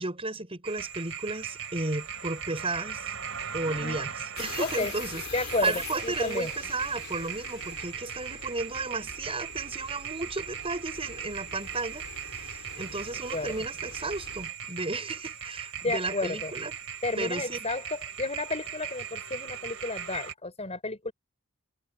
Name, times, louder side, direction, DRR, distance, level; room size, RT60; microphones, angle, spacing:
voice 1, 0.0-3.1 3.5-4.1 4.4-16.8 17.2-17.6, right 2 dB, 30° right, 6.4 m, -34 dB
sound 1, 0.6-20.3, right 8 dB, 75° right, 4.3 m, -39 dB
voice 2, 3.7-4.0 4.6-4.9 5.3-6.5 13.3-13.6 15.8-16.5 17.0-21.1, left 2 dB, 30° left, 4.9 m, -32 dB
sound 2, 4.4-14.5, left 6 dB, 85° left, 3.5 m, -44 dB
head